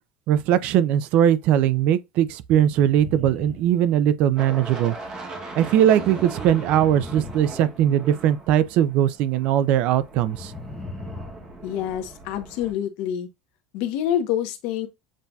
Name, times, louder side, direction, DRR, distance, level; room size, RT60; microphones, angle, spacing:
voice 1, 0.3-4.9 5.5-10.5, right 10 dB, 50° right, 0.4 m, -20 dB
sound 1, 0.6-1.0 2.5-4.4 6.5-8.2 10.2-12.1, left 3 dB, 10° left, 0.6 m, -40 dB
sound 2, 4.4-12.7, right 3 dB, 25° right, 0.9 m, -39 dB
voice 2, 11.6-13.3 13.7-14.9, left 10 dB, 60° left, 0.9 m, -27 dB
7.4 x 2.7 x 2.3 m
cardioid pair, 155°, 3 cm